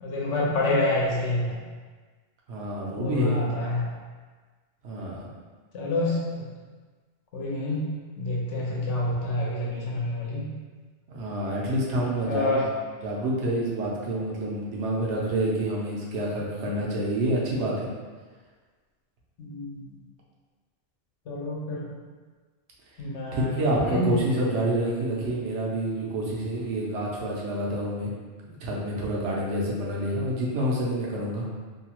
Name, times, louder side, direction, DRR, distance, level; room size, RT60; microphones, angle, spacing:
voice 1, 0.0-1.6 2.9-3.8 5.7-6.4 7.3-7.9 8.2-10.4 12.2-12.6 19.4-19.9 21.3-21.9 23.0-23.6 23.9-24.1, left 2 dB, 75° left, -4 dB, 1.0 m, -27 dB
voice 2, 2.5-3.4 4.8-5.3 11.1-12.6 13.0-17.9 23.3-28.1 28.4-31.5, right 1 dB, 75° right, -4 dB, 0.9 m, -28 dB
2.7 x 2.3 x 2.9 m, 1.4 s
omnidirectional pair, 1.2 m